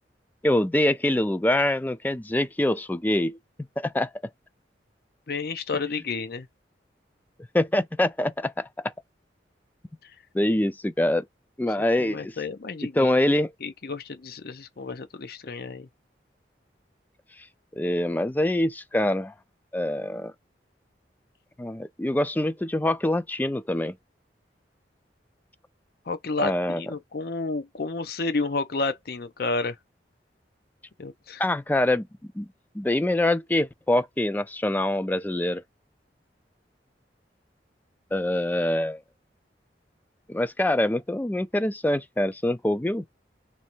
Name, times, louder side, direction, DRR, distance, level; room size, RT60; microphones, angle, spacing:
voice 1, 0.4-3.4 3.8-4.1 7.5-8.9 10.3-11.2 11.6-12.4 12.9-13.5 17.8-19.3 19.7-20.3 21.6-23.9 26.4-26.8 31.4-32.1 32.4-32.5 32.7-35.6 38.1-39.0 40.3-43.1, left 1 dB, 10° left, 0.3 m, -24 dB
voice 2, 5.3-6.5 12.0-13.3 13.6-15.9 26.1-29.7 31.0-31.4, left 3 dB, 60° left, 0.6 m, -31 dB
3.1 x 2.7 x 4.4 m
head